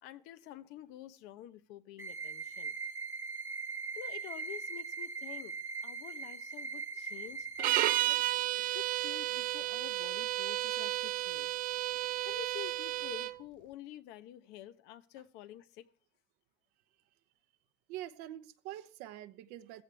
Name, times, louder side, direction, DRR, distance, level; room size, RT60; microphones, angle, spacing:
voice 1, 0.0-2.7 3.9-5.6 5.8-8.2 8.6-11.5 12.2-15.9, left 12 dB, 85° left, 1.0 m, -49 dB
sound 1, 2.0-8.0, right 4 dB, 15° right, 1.1 m, -40 dB
sound 2, 7.6-13.4, right 16 dB, 55° right, 0.5 m, -32 dB
voice 2, 17.9-19.8, right 13 dB, 85° right, 0.9 m, -45 dB
15.0 x 15.0 x 3.4 m
cardioid pair, 130°, 17 cm